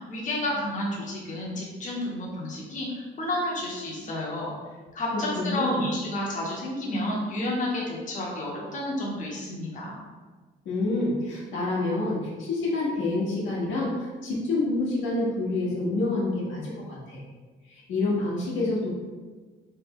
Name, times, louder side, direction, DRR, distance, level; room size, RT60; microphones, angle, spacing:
voice 1, 0.0-4.5 4.9-10.0, left 1 dB, 40° left, -4 dB, 0.8 m, -31 dB
voice 2, 5.1-5.8 10.6-16.7 17.1-17.2 17.7-18.9, left 2 dB, 75° left, -6 dB, 1.1 m, -27 dB
3.2 x 2.1 x 3.5 m, 1.4 s
cardioid pair, 90°, 20 cm